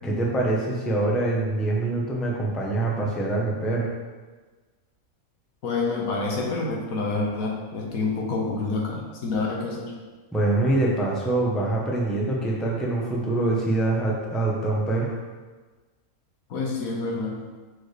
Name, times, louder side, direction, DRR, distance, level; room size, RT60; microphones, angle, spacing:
voice 1, 0.0-3.9 10.3-15.2, right 2 dB, ahead, -3 dB, 0.6 m, -24 dB
voice 2, 5.6-9.9 16.5-17.4, left 3 dB, 75° left, -1 dB, 1.4 m, -28 dB
6.1 x 4.7 x 3.2 m, 1.3 s
omnidirectional pair, 1.5 m